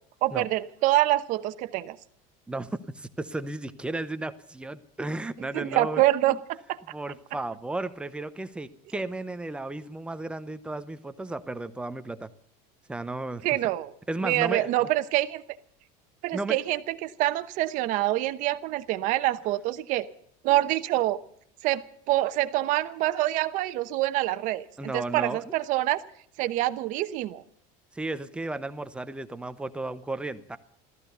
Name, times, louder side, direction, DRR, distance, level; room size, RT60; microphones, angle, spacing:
voice 1, 0.2-2.0 5.5-6.8 13.4-13.9 14.2-15.4 16.2-20.1 20.4-21.2 21.6-26.0 26.4-27.4, right 16 dB, 45° right, 12 dB, 0.9 m, -26 dB
voice 2, 2.5-6.4 6.9-12.3 12.9-13.4 14.1-14.9 16.3-16.6 24.8-25.5 27.9-30.6, right 2 dB, 5° right, 11 dB, 0.7 m, -34 dB
15.5 x 14.0 x 6.7 m, 0.64 s
cardioid pair, 175°, 18 cm